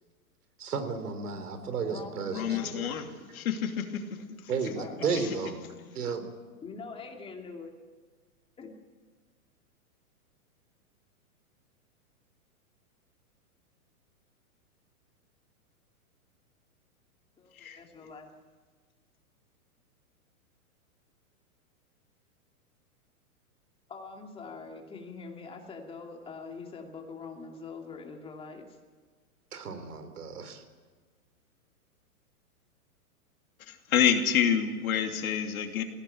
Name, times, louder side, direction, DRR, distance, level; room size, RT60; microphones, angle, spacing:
voice 1, 0.6-3.0 4.5-5.6 5.9-6.3 29.5-30.6, right 5 dB, 85° right, 9 dB, 4.0 m, -33 dB
voice 2, 1.3-2.9 4.8-5.4 6.6-7.7 8.6-8.7 17.4-18.3 23.9-28.8, left 4 dB, 10° left, 2 dB, 2.6 m, -43 dB
voice 3, 2.3-3.1 3.3-4.2 17.5-17.8 33.7-35.8, left 8 dB, 70° left, 4 dB, 3.0 m, -28 dB
21.0 x 17.0 x 8.9 m, 1.5 s
hypercardioid pair, 150°, 44 cm